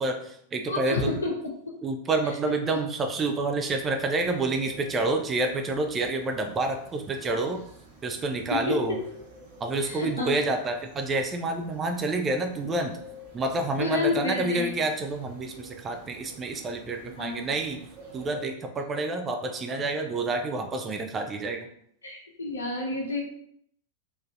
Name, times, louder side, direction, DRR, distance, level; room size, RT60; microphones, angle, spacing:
voice 1, 0.0-1.1 1.8-7.6 8.0-9.0 9.6-13.0 13.3-17.8 18.1-21.7, right 2 dB, 20° right, 4 dB, 0.4 m, -28 dB
voice 2, 0.7-1.3 2.7-2.8 8.5-9.0 9.8-10.4 13.8-14.7 17.2-17.5 22.0-23.2, left 3 dB, 75° left, -1 dB, 0.8 m, -29 dB
sound 1, 3.6-18.5, right 1 dB, 50° right, 0.9 m, -50 dB
3.8 x 2.5 x 2.4 m, 0.69 s
figure-of-eight pair, 90°, 0 cm